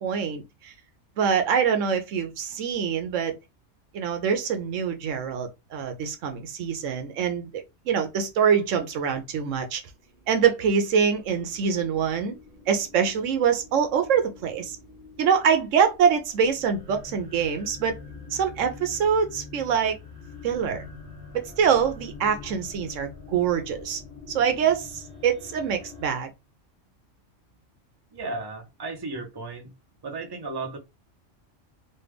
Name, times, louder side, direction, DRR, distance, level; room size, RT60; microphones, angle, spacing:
voice 1, 0.0-0.7 1.2-3.3 3.9-9.8 10.3-12.3 12.7-14.8 15.2-18.0 18.3-19.9 20.4-20.8 21.3-24.0 24.3-26.3, right 7 dB, 80° right, 1.0 m, -24 dB
sound 1, 9.9-26.1, left 4 dB, 60° right, 1.1 m, -45 dB
voice 2, 28.1-29.7 30.0-30.8, right 3 dB, 25° right, 0.7 m, -34 dB
3.3 x 2.3 x 3.3 m
omnidirectional pair, 1.3 m